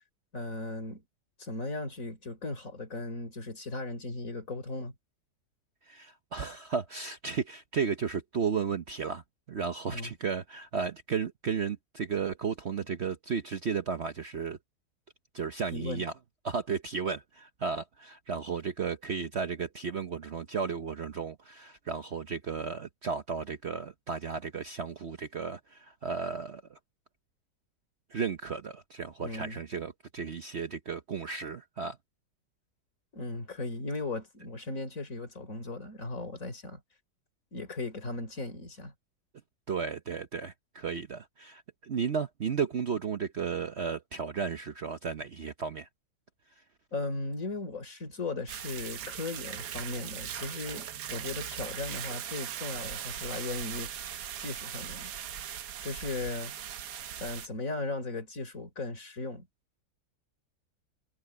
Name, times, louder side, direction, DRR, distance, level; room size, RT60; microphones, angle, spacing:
voice 1, 0.3-1.0 1.4-4.9 9.9-10.1 15.7-16.0 29.2-29.6 33.1-36.8 37.5-38.9 46.9-53.9 54.4-55.1 55.8-56.5 57.2-59.5, left 2 dB, 50° left, 4.0 m, -37 dB
voice 2, 5.8-9.2 9.5-14.6 15.3-16.1 16.4-26.8 28.1-32.0 39.7-45.9, right 6 dB, 50° right, 1.0 m, -34 dB
sound 1, 48.5-57.5, right 9 dB, 75° right, 1.5 m, -39 dB
omnidirectional pair, 1.8 m